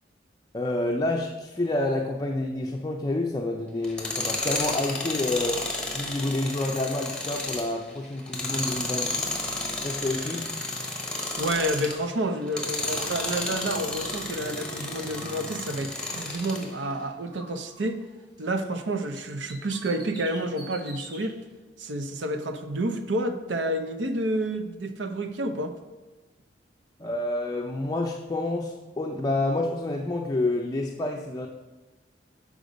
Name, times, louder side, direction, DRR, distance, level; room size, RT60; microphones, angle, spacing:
voice 1, 0.5-9.4 9.8-10.5 27.0-31.5, left 2 dB, 20° left, 1 dB, 0.5 m, -28 dB
Tools, 3.8-12.0 12.5-16.7, left 2 dB, 5° left, 1.0 m, -32 dB
Bird, 11.1-12.7 13.0-16.4 16.8-18.9 19.2-21.3, right 1 dB, 25° right, 1.6 m, -47 dB
voice 2, 11.4-18.0 18.4-21.4 21.8-25.7, right 1 dB, 80° right, 7 dB, 0.7 m, -29 dB
6.6 x 5.0 x 5.1 m, 1.2 s
head